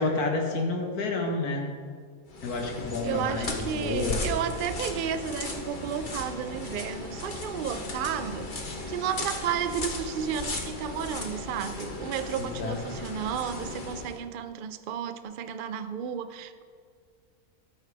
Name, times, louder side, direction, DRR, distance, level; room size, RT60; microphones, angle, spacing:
voice 1, 0.0-1.7 2.4-4.2 12.4-12.8, left 3 dB, 85° left, 2 dB, 1.9 m, -29 dB
sound 1, 2.3-14.2, left 2 dB, 35° left, 1.2 m, -36 dB
voice 2, 3.0-8.5 8.9-16.6, right 8 dB, 65° right, 10 dB, 0.5 m, -32 dB
13.5 x 9.5 x 3.4 m, 2.1 s
omnidirectional pair, 1.6 m